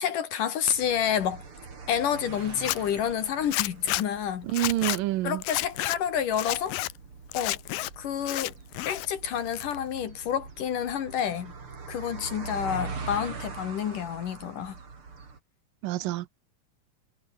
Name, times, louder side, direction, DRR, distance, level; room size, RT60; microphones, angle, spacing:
voice 1, 0.0-1.4 1.9-4.5 5.2-6.8 7.3-7.6 8.0-8.5 8.9-11.5 11.9-14.8, left 9 dB, 70° left, 3.4 m, -29 dB
sound 1, 0.7-15.4, right 4 dB, 40° right, 4.3 m, -43 dB
Zipper (clothing), 2.5-2.8 3.5-4.0 4.5-5.0 5.4-6.0 6.3-6.9 7.3-7.9 8.2-9.1 9.4-10.0, left 18 dB, 90° left, 2.5 m, -31 dB
voice 2, 4.4-5.4 15.8-16.3, right 16 dB, 85° right, 2.5 m, -27 dB
omnidirectional pair, 3.9 m